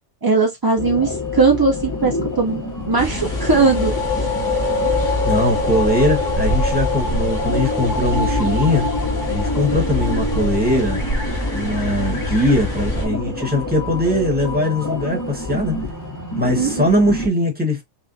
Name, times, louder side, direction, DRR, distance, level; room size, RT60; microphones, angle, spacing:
voice 1, 0.2-4.3 16.6-16.9, right 4 dB, 30° right, 0.4 m, -19 dB
sound 1, 0.8-17.3, left 1 dB, 20° left, 0.7 m, -26 dB
sound 2, 3.0-13.1, right 1 dB, 40° left, 1.8 m, -26 dB
sound 3, 3.3-12.7, left 8 dB, 70° left, 1.3 m, -28 dB
voice 2, 4.9-8.9 9.3-11.0 11.5-15.8 16.4-17.8, left 1 dB, 10° right, 1.3 m, -20 dB
5.4 x 2.3 x 2.7 m
omnidirectional pair, 1.3 m